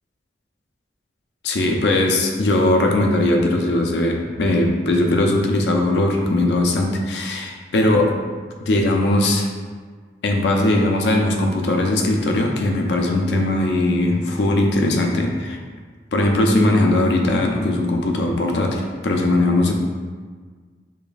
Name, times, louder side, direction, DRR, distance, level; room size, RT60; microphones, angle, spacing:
voice 1, 1.4-8.1 8.6-9.5 10.2-15.6 16.1-19.7, left 1 dB, 75° left, 2 dB, 0.5 m, -19 dB
5.1 x 2.5 x 2.3 m, 1.5 s
head